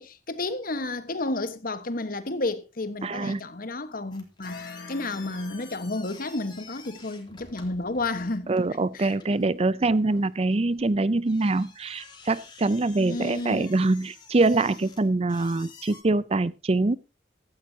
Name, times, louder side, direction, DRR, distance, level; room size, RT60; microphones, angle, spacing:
voice 1, 0.0-8.5 8.9-9.2 13.0-13.7, left 2 dB, 55° left, 1.4 m, -31 dB
voice 2, 3.0-3.4 8.5-17.0, right 2 dB, 35° right, 0.5 m, -24 dB
sound 1, 4.1-16.0, left 4 dB, 25° left, 2.9 m, -50 dB
sound 2, 4.4-6.4, left 3 dB, 70° left, 3.0 m, -44 dB
15.5 x 13.0 x 2.8 m
head